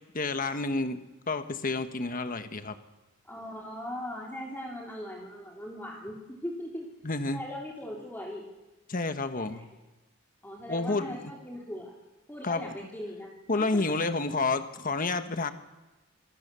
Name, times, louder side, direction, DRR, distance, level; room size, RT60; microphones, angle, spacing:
voice 1, 0.1-1.0 1.3-2.7 7.0-7.4 8.9-9.6 10.7-11.3 12.4-12.6 13.5-15.5, left 3 dB, 45° left, 9 dB, 1.4 m, -29 dB
voice 2, 3.2-6.9 7.3-8.5 9.4-9.6 10.4-12.0 12.3-13.8, left 1 dB, 10° left, -2 dB, 3.4 m, -40 dB
26.5 x 20.0 x 6.9 m, 1.2 s
head